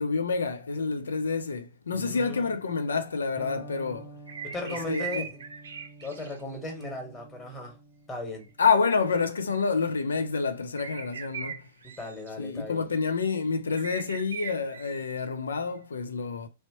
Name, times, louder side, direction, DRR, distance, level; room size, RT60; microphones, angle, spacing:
voice 1, 0.0-4.1 4.7-5.2 8.6-11.6 12.4-16.5, left 5 dB, 80° left, 0.6 m, -28 dB
voice 2, 1.9-2.5 4.5-5.5 6.0-7.8 8.1-8.5 12.0-12.9, left 2 dB, 20° left, 1.5 m, -37 dB
Electric guitar, 3.4-11.2, right 3 dB, 15° right, 0.8 m, -50 dB
sound 1, 4.3-6.6 6.8-6.9 8.8-9.2 9.9-10.0 10.8-12.3 13.0-13.3 13.8-15.2 15.8-15.9, right 7 dB, 75° right, 0.6 m, -40 dB
3.1 x 2.8 x 3.1 m
hypercardioid pair, 110°, 0 cm